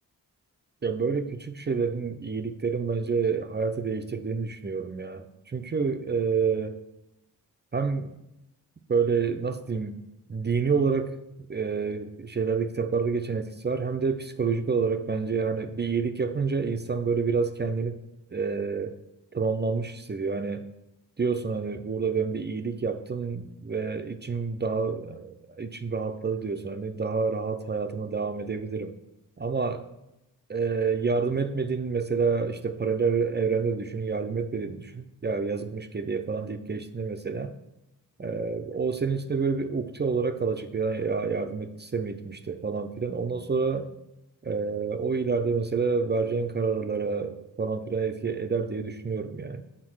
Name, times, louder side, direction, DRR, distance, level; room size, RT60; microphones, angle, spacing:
voice 1, 0.8-6.8 7.7-8.1 8.9-10.0 10.3-11.2 11.5-18.0 18.3-19.0 19.3-20.7 21.2-28.9 29.4-29.8 30.5-37.5 38.2-43.9 44.4-49.6, right 5 dB, 25° right, 7 dB, 0.6 m, -28 dB
6.4 x 4.0 x 6.1 m, 0.89 s
supercardioid pair, 50°, 39 cm